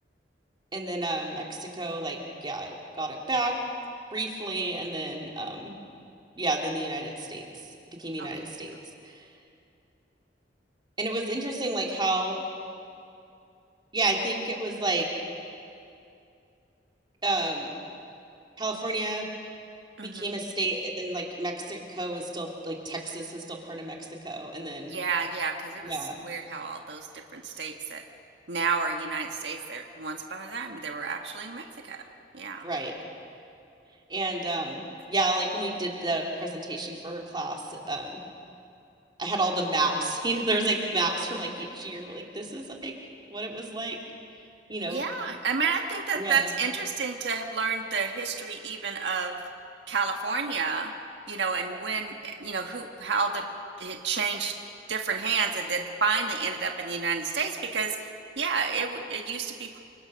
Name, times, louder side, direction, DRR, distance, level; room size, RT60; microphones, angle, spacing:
voice 1, 0.7-3.5 4.1-5.8 6.4-7.5 8.0-8.7 9.0-9.2 11.0-12.4 13.9-15.1 17.2-17.7 18.6-19.3 20.0-24.0 24.2-24.9 25.8-26.2 32.6-32.9 34.1-38.1 39.2-42.9 43.3-44.0 44.7-45.1 46.1-46.5, right 2 dB, 25° right, 0 dB, 3.0 m, -30 dB
voice 2, 20.0-20.3 24.9-25.9 26.2-27.1 27.3-28.0 28.5-32.0 32.3-32.7 44.9-49.4 49.9-50.9 51.3-53.4 53.8-54.6 54.9-58.1 58.4-59.8, right 5 dB, 75° right, 3 dB, 1.6 m, -30 dB
29.0 x 25.5 x 6.4 m, 2.6 s
head